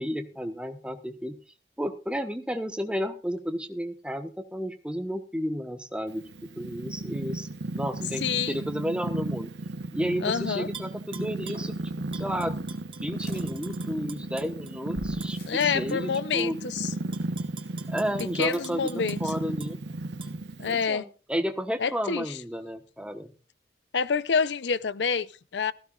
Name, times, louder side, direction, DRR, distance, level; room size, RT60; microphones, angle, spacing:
voice 1, 0.0-1.4 1.8-7.5 7.7-9.5 9.9-16.6 17.9-18.9 19.2-19.8 20.7-23.3, equal, 5° right, 1.1 m, -32 dB
Purr, 6.1-20.9, right 2 dB, 85° right, 0.9 m, -35 dB
voice 2, 8.2-8.6 10.2-10.7 15.5-16.9 18.4-19.2 20.6-21.0 21.8-22.2 23.9-25.7, left 6 dB, 90° left, 0.6 m, -27 dB
Tap / Glass, 10.7-11.7 12.1-14.7 15.2-15.3 15.9-16.5 16.9-19.7 20.2-20.3, right 7 dB, 30° right, 1.5 m, -45 dB
sound 1, 13.3-14.2 14.9-15.9 18.5-19.1 19.4-19.5 19.8-19.9, left 1 dB, 60° left, 4.7 m, -46 dB
17.0 x 15.0 x 2.4 m
head